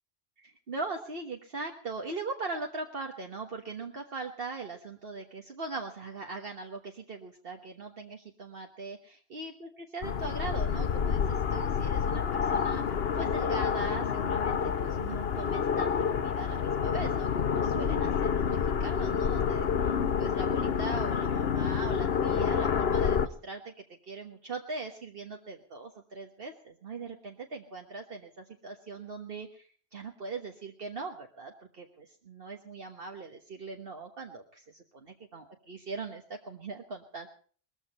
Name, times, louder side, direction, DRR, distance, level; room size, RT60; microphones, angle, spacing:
voice 1, 0.4-9.0 9.3-23.7 24.0-37.3, right 3 dB, 65° right, 2 dB, 1.6 m, -40 dB
sound 1, 10.0-23.3, left 7 dB, 75° left, 1.1 m, -28 dB
20.5 x 14.5 x 4.3 m, 0.44 s
omnidirectional pair, 1.1 m